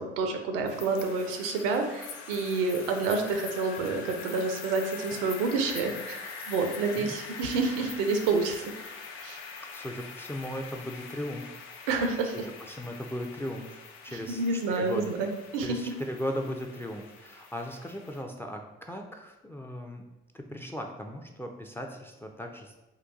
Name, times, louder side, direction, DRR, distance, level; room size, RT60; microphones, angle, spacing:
voice 1, 0.0-8.6 9.2-9.4 11.9-12.4 14.1-15.8, right 3 dB, 75° right, 5 dB, 0.5 m, -29 dB
sound 1, 0.7-18.2, left 5 dB, 65° left, 0.5 m, -44 dB
voice 2, 9.7-11.6 12.6-15.1 15.6-20.0 20.3-22.8, equal, 10° left, 3 dB, 0.3 m, -37 dB
3.8 x 2.2 x 2.5 m, 1.0 s
hypercardioid pair, 45°, 29 cm